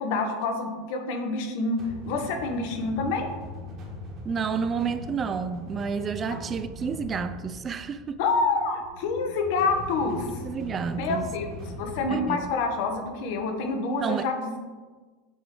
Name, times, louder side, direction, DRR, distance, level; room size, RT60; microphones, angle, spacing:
voice 1, 0.0-3.3 8.2-10.4 10.9-14.6, left 3 dB, 65° left, 1.0 m, -27 dB
sound 1, 1.8-13.7, left 1 dB, 45° right, 1.6 m, -41 dB
voice 2, 4.3-8.2 10.4-11.3 12.1-12.5 14.0-14.3, right 6 dB, 30° right, 0.3 m, -30 dB
7.7 x 3.2 x 3.8 m
supercardioid pair, 115°, 0 cm